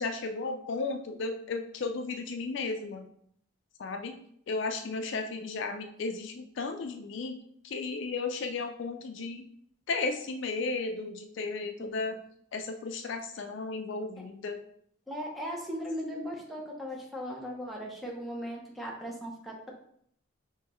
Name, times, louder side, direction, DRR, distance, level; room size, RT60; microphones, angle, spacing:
voice 1, 0.0-3.1 3.8-4.1 4.5-7.4 7.6-9.5 9.9-12.2 12.5-14.6, left 3 dB, 60° left, 6 dB, 0.4 m, -34 dB
voice 2, 15.1-19.7, equal, ahead, -2 dB, 0.8 m, -38 dB
5.6 x 3.0 x 3.1 m, 0.67 s
head